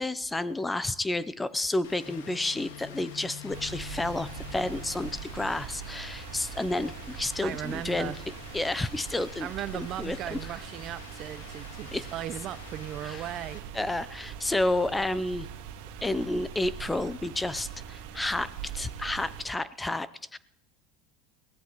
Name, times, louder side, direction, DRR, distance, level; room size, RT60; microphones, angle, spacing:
voice 1, 0.0-8.1 8.5-9.5 9.7-10.4 11.9-12.0 13.0-13.2 13.7-15.5 16.0-20.4, left 2 dB, 10° left, 17 dB, 0.7 m, -30 dB
Rain, 1.8-13.6, left 7 dB, 80° left, 1.8 m, -49 dB
Guitar, 2.0-9.9, left 12 dB, 5° right, 7.8 m, -49 dB
sound 1, 3.5-19.5, right 8 dB, 75° right, 2.0 m, -42 dB
voice 2, 7.4-8.2 9.4-13.6, right 12 dB, 50° right, 16 dB, 0.7 m, -37 dB
22.0 x 16.0 x 3.1 m, 0.76 s
hypercardioid pair, 90°, 0 cm